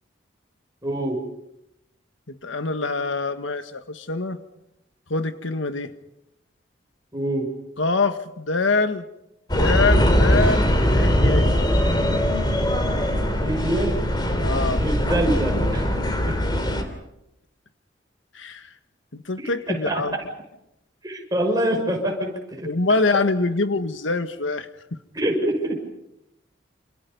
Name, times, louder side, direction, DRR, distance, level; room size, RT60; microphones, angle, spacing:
voice 1, 0.8-1.2 7.1-7.5 13.4-13.9 14.8-16.3 19.4-20.2 21.0-22.7 23.1-23.2 25.1-25.8, right 1 dB, 20° right, 1 dB, 6.4 m, -25 dB
voice 2, 2.3-4.4 5.1-5.9 7.8-9.1 9.5-11.5 14.4-14.8 18.3-18.7 19.1-20.1 22.6-24.7, left 3 dB, 90° left, 9 dB, 1.6 m, -24 dB
sound 1, 9.5-16.8, equal, 20° left, 3.3 m, -21 dB
29.0 x 27.5 x 5.5 m, 0.85 s
head